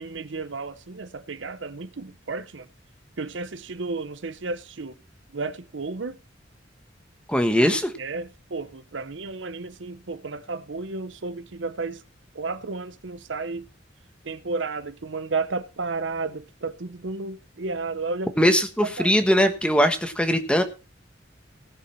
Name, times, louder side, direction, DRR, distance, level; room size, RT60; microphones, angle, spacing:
voice 1, 0.0-2.7 3.2-5.0 5.3-6.2 8.0-12.0 12.3-13.7 14.2-18.3 18.8-19.1, right 3 dB, 75° right, 0.8 m, -32 dB
voice 2, 7.3-7.9 18.4-20.6, equal, 5° left, 1.3 m, -20 dB
18.5 x 6.7 x 4.4 m
head